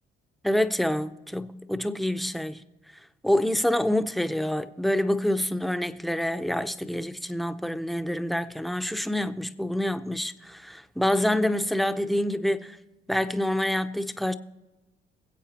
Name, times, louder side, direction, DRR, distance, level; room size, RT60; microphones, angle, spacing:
voice 1, 0.4-2.6 3.2-12.8 13.1-14.3, left 1 dB, ahead, 0.6 m, -27 dB
23.0 x 8.1 x 2.9 m
cardioid pair, 90°, 20 cm